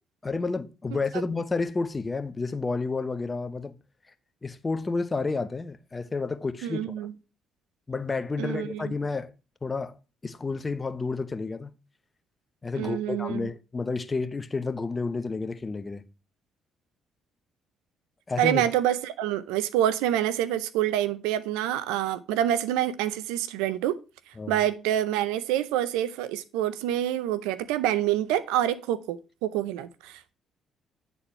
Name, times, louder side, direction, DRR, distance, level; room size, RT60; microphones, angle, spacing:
voice 1, 0.2-3.7 4.4-7.1 7.9-9.3 9.6-9.9 10.2-11.7 12.6-16.0 18.3-18.6 24.4-24.6, left 3 dB, 30° left, 0.8 m, -30 dB
voice 2, 6.6-7.1 8.4-8.9 12.8-13.5 18.4-24.0 24.5-30.3, right 12 dB, 85° right, 0.5 m, -27 dB
9.7 x 4.2 x 4.3 m
supercardioid pair, 60°, 0 cm